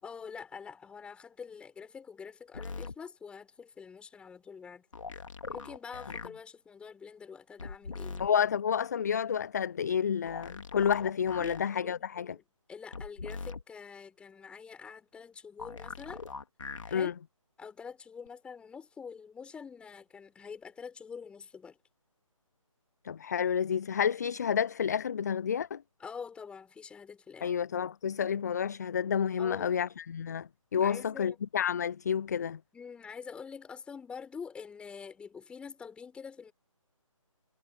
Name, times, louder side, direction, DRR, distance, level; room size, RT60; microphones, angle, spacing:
voice 1, 0.0-4.9 5.5-8.3 11.4-16.3 16.9-17.1 17.6-21.8 26.0-27.6 29.4-29.8 30.8-31.4 32.7-36.5, left 6 dB, 5° left, 6.1 m, -46 dB
sound 1, 2.5-2.9 4.9-6.3 7.6-8.3 10.3-11.6 12.9-13.6 15.6-17.0 18.3-18.4, left 4 dB, 65° left, 2.8 m, -41 dB
voice 2, 8.2-12.4 16.9-17.1 23.0-25.8 27.4-32.6, left 8 dB, 30° left, 0.4 m, -30 dB
figure-of-eight pair, 150°, 17 cm